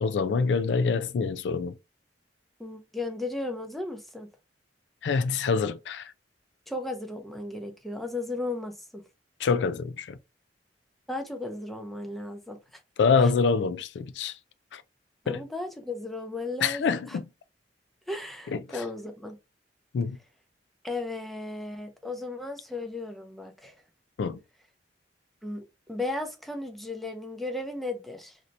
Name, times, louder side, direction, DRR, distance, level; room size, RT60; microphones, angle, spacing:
voice 1, 0.0-1.7 5.0-6.1 9.4-10.2 13.0-14.3 14.7-14.8 15.3-15.4 16.6-17.2 18.5-18.6 19.9-20.2 24.2-24.4, left 5 dB, 75° left, 0.3 m, -25 dB
voice 2, 2.6-4.3 6.7-9.0 11.1-12.8 13.2-13.3 15.2-17.2 18.1-19.4 20.8-23.7 25.4-28.4, left 2 dB, ahead, 0.6 m, -35 dB
2.8 x 2.6 x 3.2 m
head